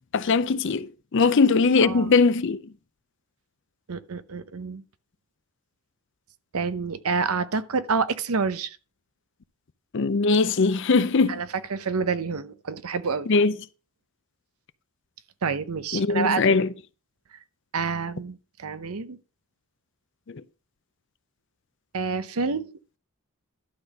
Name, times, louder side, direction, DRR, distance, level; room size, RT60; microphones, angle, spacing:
voice 1, 0.1-2.6 9.9-11.4 13.3-13.5 15.9-16.7, left 4 dB, 55° left, 0.5 m, -20 dB
voice 2, 1.8-2.1 3.9-4.8 6.5-8.8 11.3-13.3 15.4-16.6 17.7-19.2 21.9-22.7, right 5 dB, 80° right, 0.7 m, -28 dB
11.5 x 4.1 x 6.5 m
head